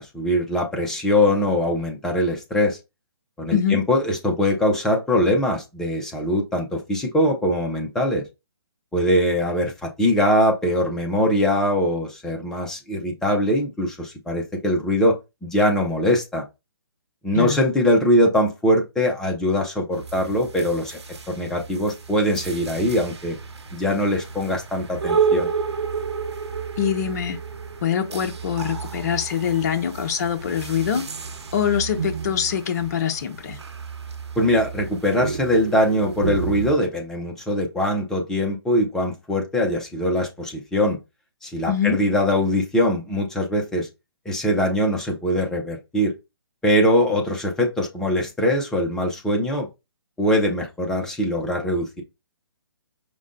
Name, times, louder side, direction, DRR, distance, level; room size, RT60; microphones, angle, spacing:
voice 1, 0.0-2.8 3.4-8.2 8.9-15.2 15.4-16.4 17.2-21.0 21.3-23.4 23.7-25.5 34.4-41.0 41.4-43.9 44.3-46.1 46.6-49.7 50.2-52.0, left 1 dB, 5° left, 0.5 m, -22 dB
voice 2, 3.5-3.8 17.3-17.6 26.8-27.4 27.8-31.1 31.5-33.6 41.7-42.0, left 8 dB, 40° left, 0.8 m, -24 dB
sound 1, 19.9-36.7, right 6 dB, 80° right, 1.1 m, -31 dB
5.1 x 2.1 x 3.7 m
hypercardioid pair, 160°, 14 cm